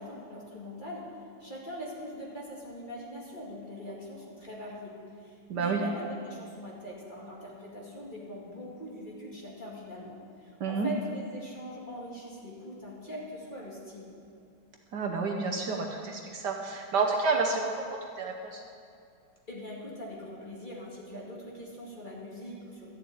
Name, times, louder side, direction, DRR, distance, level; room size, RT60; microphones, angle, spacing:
voice 1, 0.0-14.1 19.5-22.9, equal, 25° left, -4 dB, 2.2 m, -42 dB
voice 2, 5.5-5.8 10.6-10.9 14.9-17.7 18.2-18.6, right 4 dB, 65° right, 2 dB, 1.4 m, -29 dB
13.0 x 7.2 x 8.6 m, 2.4 s
omnidirectional pair, 2.2 m